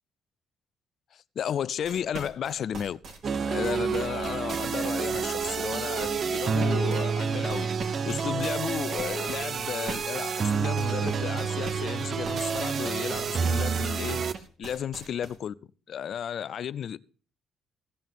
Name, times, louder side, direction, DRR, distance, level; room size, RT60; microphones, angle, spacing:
voice 1, 1.1-3.0 3.4-14.2 14.6-15.5 15.9-17.0, left 9 dB, 65° left, 0.5 m, -33 dB
sound 1, 1.8-15.4, right 4 dB, 65° right, 3.2 m, -42 dB
sound 2, 3.2-14.3, right 6 dB, 50° right, 0.6 m, -29 dB
16.5 x 5.5 x 7.7 m
cardioid pair, 90°, 0 cm